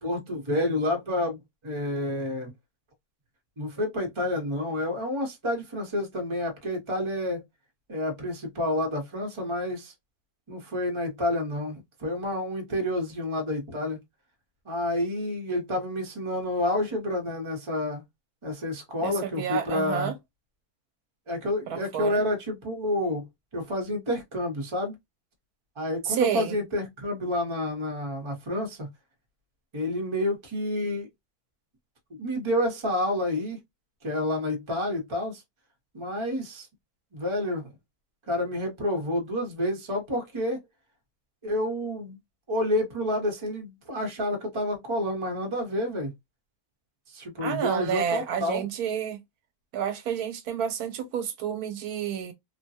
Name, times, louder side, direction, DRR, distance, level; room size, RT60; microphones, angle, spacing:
voice 1, 0.0-1.4 1.6-2.5 3.6-7.4 7.9-9.9 10.5-14.0 14.6-18.0 18.4-20.1 21.3-23.3 23.5-24.9 25.8-28.9 29.7-31.1 32.1-33.6 34.0-35.4 35.9-36.7 37.1-37.7 38.3-40.6 41.4-42.2 42.5-46.1 47.1-48.7, left 1 dB, 25° right, 0.9 m, -29 dB
voice 2, 19.0-20.1 21.7-22.2 26.0-26.6 47.4-49.2 49.7-52.3, right 8 dB, 80° right, 1.1 m, -29 dB
3.2 x 2.2 x 2.6 m
omnidirectional pair, 1.6 m